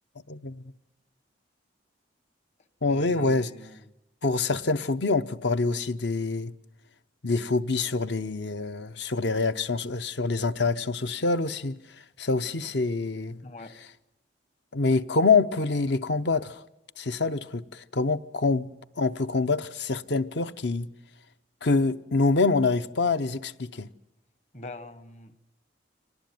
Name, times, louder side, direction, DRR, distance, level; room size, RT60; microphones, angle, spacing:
voice 1, 0.3-0.6 2.8-3.5 4.2-6.5 7.2-11.8 12.2-13.4 14.7-16.6 17.0-18.7 19.0-20.9 21.6-23.9, left 3 dB, 65° left, 0.8 m, -26 dB
voice 2, 2.8-3.8 13.4-13.8 24.5-25.4, left 2 dB, 35° left, 1.1 m, -43 dB
25.0 x 19.5 x 9.4 m
head